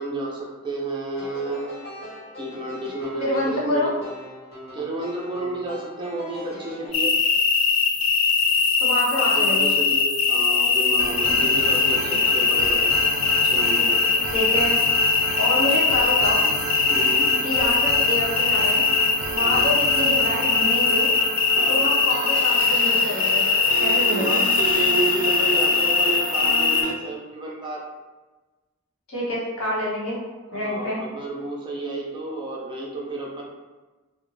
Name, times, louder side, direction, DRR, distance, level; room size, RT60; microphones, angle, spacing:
voice 1, 0.0-1.7 2.4-4.0 4.7-7.1 9.2-13.0 13.4-14.0 16.9-17.3 19.4-19.6 21.5-21.8 24.2-27.8 30.5-33.4, right 2 dB, 20° right, -3 dB, 0.5 m, -31 dB
sound 1, 1.2-6.9, left 1 dB, 50° left, 1.1 m, -40 dB
voice 2, 3.2-4.0 8.8-9.7 14.3-14.8 15.4-16.5 17.4-18.9 19.3-21.1 21.7-23.5 23.8-24.4 29.1-30.2 30.5-31.0, left 1 dB, 85° left, -5 dB, 0.8 m, -27 dB
sound 2, 6.9-26.8, left 4 dB, 65° left, 0.4 m, -21 dB
sound 3, 11.0-26.9, right 4 dB, 80° right, 0.3 m, -32 dB
2.4 x 2.0 x 3.1 m, 1.2 s
head